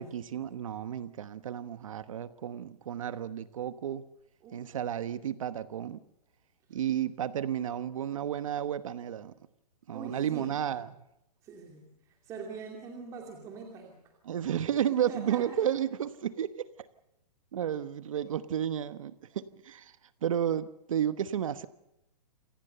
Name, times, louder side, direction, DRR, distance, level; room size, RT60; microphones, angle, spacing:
voice 1, 0.0-4.1 4.5-6.0 6.7-9.3 9.9-10.9 14.3-16.7 17.5-19.9 20.2-21.7, right 10 dB, 50° right, 1.1 m, -32 dB
voice 2, 4.4-4.8 6.7-6.8 9.9-10.5 11.4-14.1 14.9-15.6, right 5 dB, 15° right, 2.6 m, -44 dB
28.0 x 18.5 x 6.8 m
hypercardioid pair, 170°, 21 cm